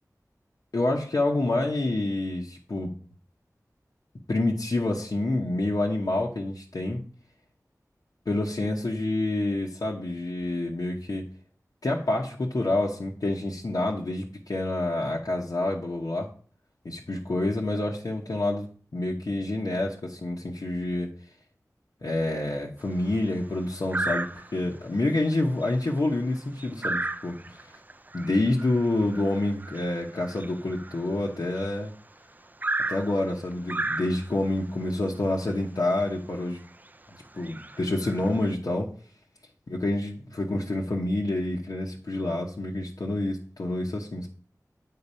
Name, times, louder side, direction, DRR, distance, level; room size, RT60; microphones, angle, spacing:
voice 1, 0.7-2.9 4.3-7.0 8.3-11.2 11.8-16.3 16.8-18.7 18.9-21.1 22.0-27.4 28.1-31.9 32.9-36.6 37.3-38.9 39.7-44.3, left 2 dB, 75° left, -3 dB, 1.0 m, -28 dB
sound 1, 22.8-23.2 23.9-24.7 25.2-25.3 25.6-31.9 32.6-34.5 35.5-35.6 36.0-36.1 36.7-36.9 37.3-38.5, right 2 dB, 25° right, 0.4 m, -34 dB
8.5 x 3.9 x 5.5 m, 0.43 s
wide cardioid pair, 45°, 7 cm